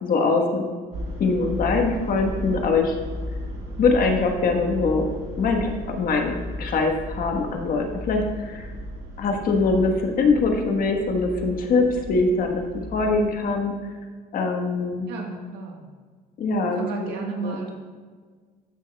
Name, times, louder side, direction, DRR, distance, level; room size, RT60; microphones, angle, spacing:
voice 1, 0.0-0.6 1.2-3.0 3.8-5.1 5.4-8.7 9.2-12.6 12.9-13.7 14.3-15.1 16.4-17.1 17.4-17.6, left 3 dB, 55° left, 3 dB, 1.3 m, -23 dB
sound 1, 0.9-13.4, equal, 75° right, 1.8 m, -35 dB
voice 2, 15.1-15.9 16.7-17.7, right 4 dB, 90° right, 1 dB, 1.4 m, -32 dB
14.0 x 6.2 x 2.3 m, 1.5 s
cardioid pair, 110°, 17 cm